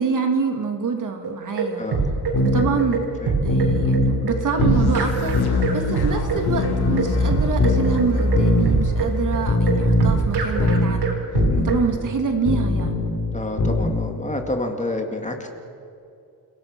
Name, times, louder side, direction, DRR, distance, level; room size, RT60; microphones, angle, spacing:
voice 1, 0.0-1.8 2.4-3.1 3.4-11.2 11.6-13.1, right 5 dB, 50° right, 5 dB, 2.6 m, -26 dB
sound 1, 1.2-11.9, right 4 dB, 75° right, 4.8 m, -24 dB
voice 2, 1.8-2.2 3.2-3.3 9.0-9.3 11.5-11.8 13.3-15.5, left 2 dB, 20° left, 4 dB, 2.3 m, -29 dB
sound 2, 2.3-2.7 3.5-4.2 4.6-4.9 5.3-5.7 6.5-7.2 7.6-7.9 8.3-8.7 9.5-10.2 10.6-10.9 11.3-11.6 12.5-13.1 13.6-13.9, left 2 dB, 55° left, 3.8 m, -20 dB
sound 3, 4.5-10.7, left 2 dB, 75° left, 2.9 m, -26 dB
28.5 x 18.0 x 6.2 m, 2.6 s
cardioid pair, 135°, 40 cm